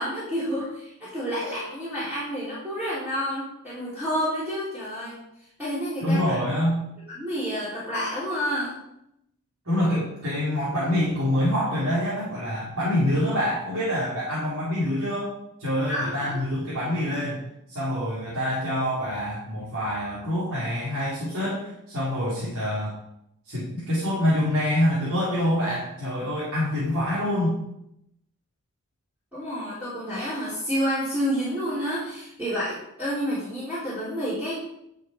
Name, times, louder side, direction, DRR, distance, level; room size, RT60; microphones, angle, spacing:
voice 1, 0.0-5.2 5.6-6.4 7.1-8.7 15.9-16.4 29.3-34.5, equal, 10° right, -11 dB, 3.5 m, -29 dB
voice 2, 6.0-6.8 9.7-15.3 15.6-17.4 17.7-23.0 23.5-27.6, left 1 dB, 70° right, -10 dB, 4.0 m, -26 dB
11.0 x 6.7 x 4.7 m, 0.79 s
head